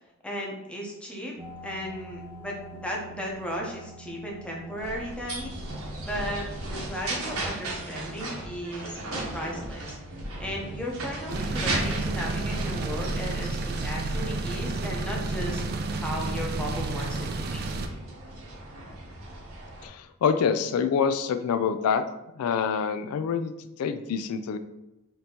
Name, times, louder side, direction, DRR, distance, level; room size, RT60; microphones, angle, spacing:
voice 1, 0.2-1.3 1.6-5.5 6.0-8.9 9.3-10.0 10.4-17.7, equal, 5° left, -2 dB, 0.8 m, -35 dB
sound 1, 1.4-18.6, right 1 dB, 25° right, 0.9 m, -50 dB
sound 2, 4.8-19.9, right 2 dB, 70° right, 0.9 m, -37 dB
sound 3, 11.3-17.9, right 2 dB, 45° right, 0.4 m, -30 dB
voice 2, 19.8-22.0 22.3-23.5 23.8-24.6, left 6 dB, 90° left, 9 dB, 0.3 m, -26 dB
5.1 x 2.8 x 2.9 m, 0.95 s
head